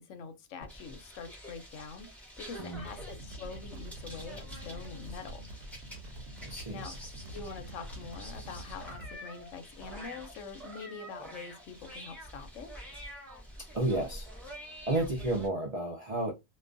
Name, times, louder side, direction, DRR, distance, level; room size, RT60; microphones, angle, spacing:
voice 1, 0.0-5.4 6.7-7.0 7.3-12.7, left 5 dB, 75° left, 0.9 m, -45 dB
sound 1, 0.6-15.5, equal, ahead, 0.7 m, -47 dB
sound 2, 2.7-9.2, right 1 dB, 80° right, 1.0 m, -45 dB
voice 2, 6.4-6.9 13.7-14.3 14.9-16.3, right 2 dB, 50° right, 0.4 m, -31 dB
2.4 x 2.2 x 2.5 m
omnidirectional pair, 1.4 m